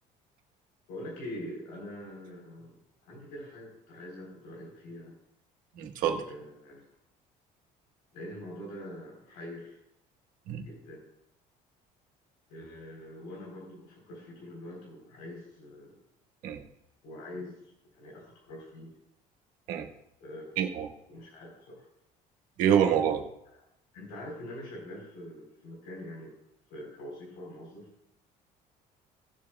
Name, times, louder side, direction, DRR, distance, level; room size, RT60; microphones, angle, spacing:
voice 1, 0.9-2.7 3.0-5.2 6.3-6.8 8.1-9.8 10.6-11.0 12.5-16.0 17.0-19.0 20.2-20.6 21.1-21.9 23.9-26.4 26.7-27.9, left 1 dB, 90° left, -2 dB, 3.8 m, -44 dB
voice 2, 5.7-6.2 10.5-10.6 16.4-16.6 19.7-19.9 20.6-20.9 22.6-23.2, right 9 dB, 60° right, 4 dB, 1.4 m, -26 dB
18.5 x 7.4 x 2.3 m, 0.79 s
cardioid pair, 180°, 15 cm